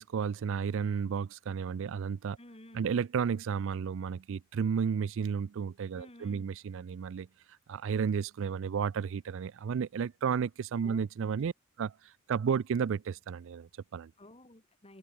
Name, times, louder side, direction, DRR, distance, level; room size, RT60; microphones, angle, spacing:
voice 1, 0.0-2.4 2.7-7.3 7.7-11.5 11.8-14.1, right 6 dB, 65° right, 0.4 m, -32 dB
voice 2, 2.4-2.9 5.9-6.5 10.8-11.1 14.2-15.0, left 1 dB, 30° left, 4.4 m, -53 dB
head